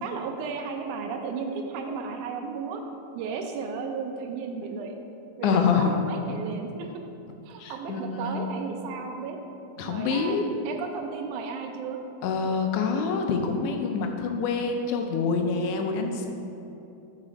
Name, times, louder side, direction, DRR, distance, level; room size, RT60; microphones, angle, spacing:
voice 1, 0.0-2.8 3.2-5.0 5.4-6.9 7.5-9.4 9.8-12.0, right 5 dB, 80° right, 4 dB, 2.1 m, -34 dB
voice 2, 5.4-6.0 7.6-8.4 9.8-10.5 12.2-16.3, left 5 dB, 80° left, 4 dB, 2.0 m, -26 dB
7.5 x 4.9 x 5.0 m, 2.9 s
omnidirectional pair, 3.6 m